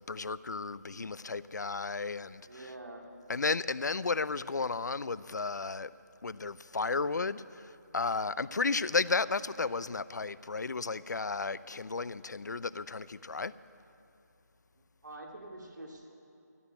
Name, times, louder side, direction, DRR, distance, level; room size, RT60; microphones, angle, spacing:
voice 1, 0.0-2.6 3.3-5.9 6.2-13.5, left 4 dB, 75° left, 0.5 m, -33 dB
voice 2, 2.5-3.1 15.0-16.1, right 2 dB, 75° right, 2.4 m, -46 dB
14.0 x 8.9 x 9.6 m
figure-of-eight pair, 170°, 10 cm